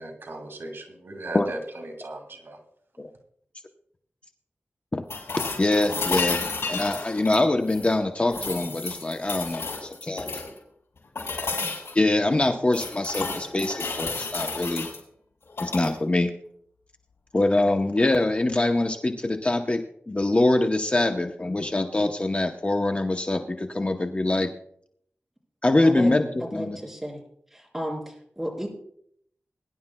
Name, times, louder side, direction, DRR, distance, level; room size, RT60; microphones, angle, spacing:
voice 1, 0.0-2.6, right 1 dB, 65° right, 3 dB, 2.2 m, -37 dB
sound 1, 5.1-7.9 8.3-10.6 11.2-12.0 12.4-15.0 15.5-15.9 18.0-18.1, left 3 dB, 90° left, 5.2 m, -31 dB
voice 2, 5.6-10.4 11.9-14.9 15.6-16.3 17.3-24.5 25.6-26.8, left 2 dB, 30° left, 5 dB, 0.7 m, -24 dB
voice 3, 25.8-26.1 26.4-27.2 27.5-28.7, equal, 5° right, -2 dB, 4.2 m, -33 dB
22.0 x 11.0 x 2.2 m, 0.67 s
wide cardioid pair, 100°, 4 cm